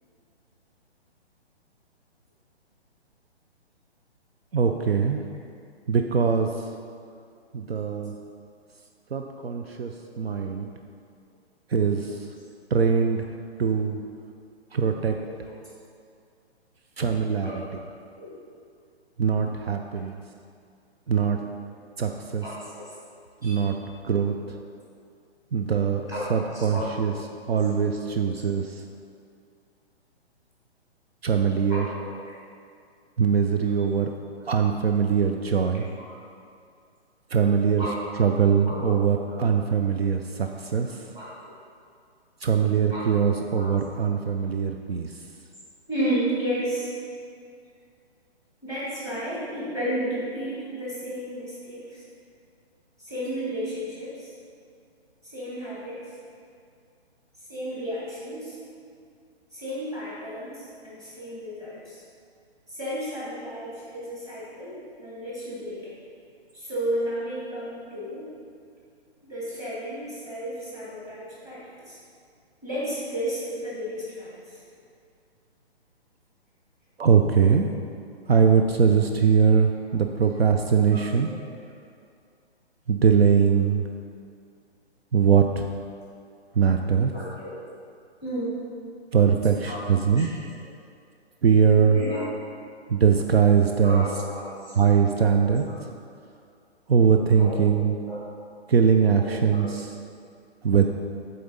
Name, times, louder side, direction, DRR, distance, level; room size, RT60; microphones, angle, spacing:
voice 1, 4.5-5.2 5.9-6.5 7.5-8.1 9.1-10.7 11.7-12.2 12.7-13.3 13.6-14.0 14.7-15.2 17.0-17.5 19.2-20.2 21.1-21.4 22.0-22.4 23.4-23.7 24.0-24.3 25.5-27.1 27.5-28.8 31.2-31.9 33.2-34.1 34.5-35.9 37.3-37.8 38.2-41.0 42.4-45.1 77.0-77.7 78.3-81.3 82.9-83.8 85.1-85.6 86.6-87.1 89.1-90.3 91.4-92.0 92.9-94.1 94.8-95.6 96.9-97.9 98.7-99.9 100.6-100.9, right 6 dB, 65° right, 4 dB, 0.5 m, -21 dB
voice 2, 15.2-15.6 17.4-17.9 18.2-18.4 22.4-22.9 23.4-23.5 26.0-27.2 28.0-28.1 31.7-32.3 33.6-33.7 36.1-36.2 37.8-38.3 38.6-39.4 41.1-41.3 42.9-43.7 45.9-46.9 48.6-52.0 53.0-54.3 55.3-56.0 57.5-58.6 59.5-62.0 62.7-65.9 66.5-68.3 69.2-72.0 72.6-74.6 80.2-80.3 80.9-81.5 87.1-87.6 88.2-88.6 89.4-89.8 90.1-90.3 90.6-90.7 91.9-92.3 93.8-94.7 95.4-95.5 97.4-97.7 98.1-98.2 99.2-99.7, equal, 10° right, -8 dB, 1.4 m, -33 dB
7.7 x 3.9 x 4.0 m, 2.3 s
figure-of-eight pair, 135°, 33 cm